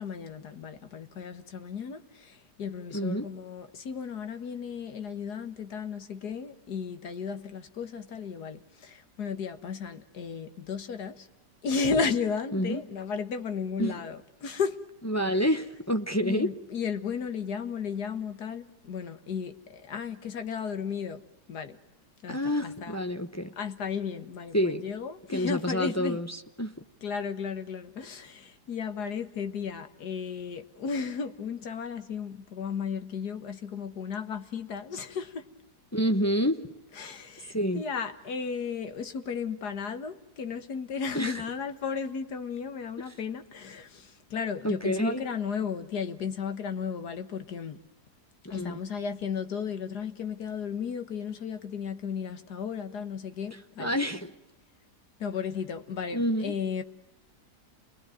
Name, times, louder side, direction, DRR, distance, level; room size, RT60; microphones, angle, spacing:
voice 1, 0.0-11.3 11.6-14.8 16.2-21.2 21.5-21.8 22.2-23.0 23.6-26.2 27.0-35.5 37.0-47.8 48.5-54.0 55.2-56.8, left 6 dB, 70° left, 2.0 m, -34 dB
voice 2, 2.9-3.3 12.5-12.8 13.8-14.0 15.0-16.5 22.3-23.5 24.5-24.8 25.3-26.7 35.9-36.6 37.5-37.8 41.1-41.4 43.1-43.2 44.6-45.2 48.4-48.8 53.5-54.3 56.1-56.6, equal, 15° left, 0.8 m, -28 dB
29.0 x 21.0 x 9.2 m
omnidirectional pair, 1.8 m